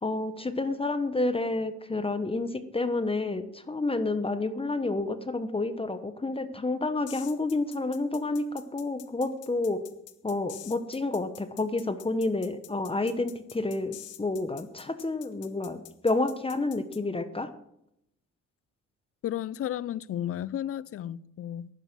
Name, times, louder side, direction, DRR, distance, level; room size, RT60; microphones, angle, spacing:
voice 1, 0.0-9.8 10.2-17.5, left 2 dB, 20° left, 1.1 m, -29 dB
sound 1, 7.1-17.0, left 13 dB, 85° left, 1.0 m, -47 dB
voice 2, 19.2-21.7, left 11 dB, 50° left, 0.5 m, -33 dB
11.0 x 9.7 x 6.2 m
cardioid pair, 90°, 30 cm